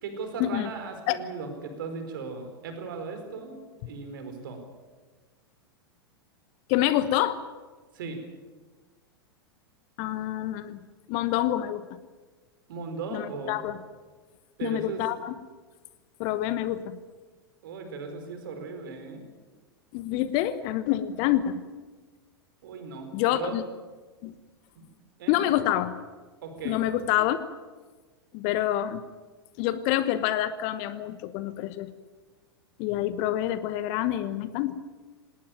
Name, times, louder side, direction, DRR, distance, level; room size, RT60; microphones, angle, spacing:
voice 1, 0.0-3.5 3.8-4.6 7.9-8.2 12.7-13.6 14.6-15.0 17.6-19.2 22.6-23.6 24.7-24.8 25.2-25.6 26.4-26.8, right 4 dB, 60° right, 6 dB, 4.6 m, -37 dB
voice 2, 6.7-7.4 10.0-10.8 11.1-12.0 13.1-13.8 14.6-15.3 16.2-17.0 19.9-21.6 23.1-23.6 24.2-24.3 25.3-26.0 26.6-27.4 28.3-29.0 29.6-31.9 32.8-34.8, left 13 dB, 45° left, 14 dB, 1.0 m, -27 dB
19.0 x 18.5 x 9.0 m, 1.4 s
figure-of-eight pair, 95°, 13 cm